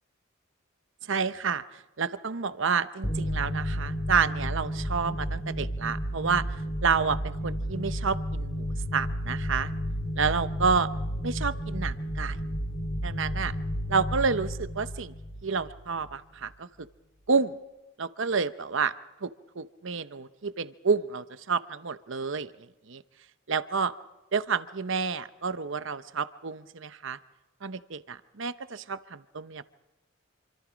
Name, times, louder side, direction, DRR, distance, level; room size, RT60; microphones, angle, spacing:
voice 1, 1.1-9.7 10.2-10.9 11.2-12.4 13.0-13.5 13.9-15.1 15.4-16.7 17.3-17.6 18.0-18.9 19.2-19.3 19.6-23.0 23.5-23.9 24.3-27.2 27.6-29.6, right 5 dB, 65° right, 13 dB, 0.8 m, -29 dB
sound 1, 3.0-16.2, equal, 35° left, 3.5 m, -32 dB
27.5 x 25.0 x 5.1 m, 1.1 s
head